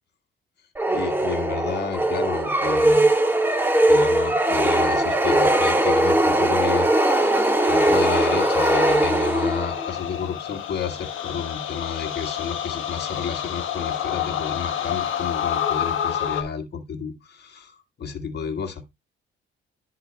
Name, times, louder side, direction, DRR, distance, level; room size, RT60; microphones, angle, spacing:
sound 1, 0.8-9.9, right 1 dB, 10° right, 1.7 m, -20 dB
voice 1, 0.9-3.1 3.9-6.9 7.7-18.8, left 6 dB, 55° left, 2.0 m, -31 dB
sound 2, 6.9-16.4, left 9 dB, 80° left, 1.7 m, -29 dB
11.0 x 3.9 x 4.3 m
cardioid pair, 90°, 20 cm